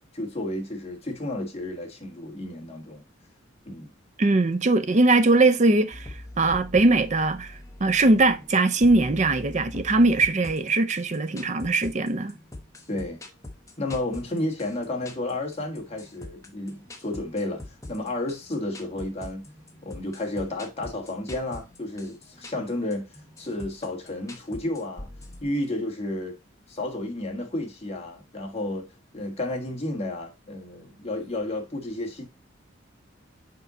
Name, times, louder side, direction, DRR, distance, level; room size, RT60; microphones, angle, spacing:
voice 1, 0.1-3.0 3.6-3.9 12.9-13.2 13.8-19.4 19.8-25.1 25.4-26.4 26.7-28.9 29.1-32.3, left 1 dB, 30° left, 1.6 m, -32 dB
voice 2, 4.2-12.4, right 2 dB, 35° right, 0.5 m, -21 dB
sound 1, 5.9-25.4, left 1 dB, 15° left, 1.0 m, -43 dB
5.7 x 5.2 x 3.9 m
head